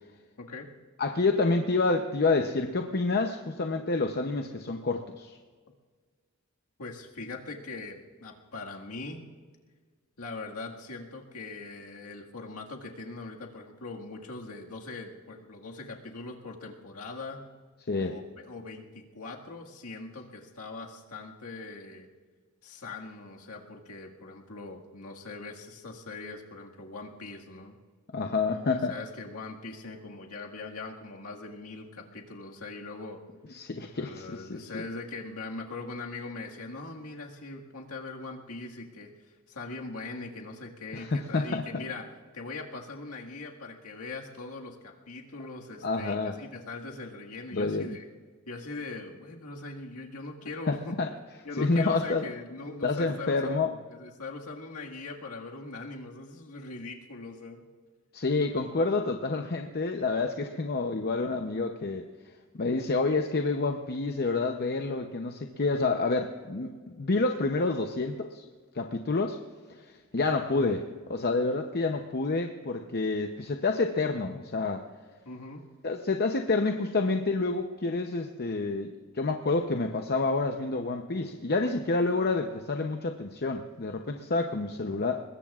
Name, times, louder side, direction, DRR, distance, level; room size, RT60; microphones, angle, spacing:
voice 1, 0.4-0.7 6.8-9.3 10.2-17.5 18.0-22.1 22.6-27.8 28.7-33.2 34.0-39.1 39.5-42.1 42.3-48.1 48.5-51.0 51.5-57.7 60.9-61.0 70.5-70.8 75.3-75.6, left 3 dB, 85° left, 0 dB, 1.9 m, -41 dB
voice 2, 1.0-5.4 17.9-18.1 28.1-28.9 33.5-34.6 40.9-41.6 45.8-46.3 47.5-48.0 50.7-51.1 51.6-52.2 52.8-53.7 58.1-62.1 62.5-68.4 68.7-69.4 70.1-70.8 71.1-74.8 75.8-85.2, left 3 dB, 45° left, 5 dB, 0.7 m, -28 dB
24.0 x 21.0 x 2.4 m, 1.5 s
head